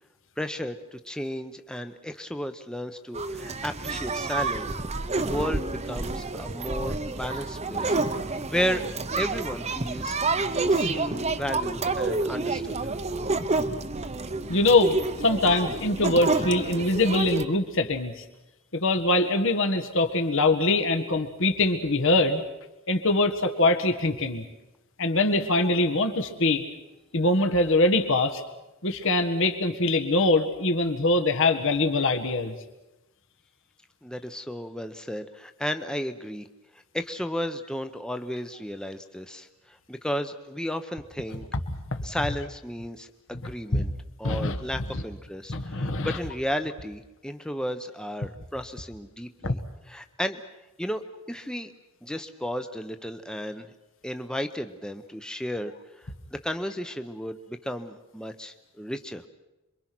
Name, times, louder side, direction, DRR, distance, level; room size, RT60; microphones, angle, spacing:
voice 1, 0.4-4.7 5.1-10.2 10.7-12.8 34.0-36.5 36.9-41.4 42.0-43.9 44.2-49.6 49.9-50.4 50.8-51.7 52.0-53.7 54.0-55.7 56.0-59.2, equal, 5° left, 7 dB, 0.9 m, -33 dB
sound 1, 3.1-17.4, right 3 dB, 30° right, 0.9 m, -29 dB
voice 2, 14.5-18.2 18.7-22.4 22.9-24.4 25.0-26.6 27.1-28.4 28.8-32.5 41.7-42.0 43.7-43.9 44.2-44.6 44.9-45.0 45.5-46.2 49.4-49.6, left 2 dB, 65° left, 6 dB, 1.7 m, -23 dB
27.0 x 23.5 x 6.1 m, 0.99 s
head